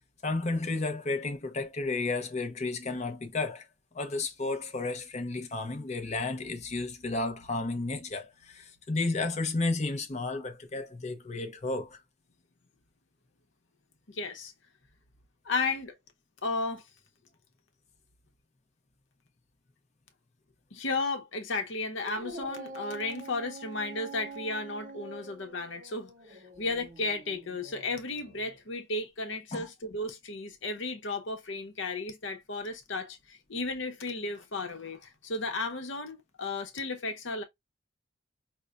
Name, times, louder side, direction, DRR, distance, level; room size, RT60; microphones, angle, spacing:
voice 1, 0.2-3.7 3.9-12.0 29.5-29.7, left 3 dB, 35° left, 0.6 m, -32 dB
voice 2, 14.1-14.5 15.4-15.9 16.4-16.8 20.7-37.4, left 3 dB, 70° left, 0.9 m, -34 dB
Dog, 21.9-28.6, right 3 dB, 40° right, 0.6 m, -46 dB
5.4 x 2.2 x 2.4 m
head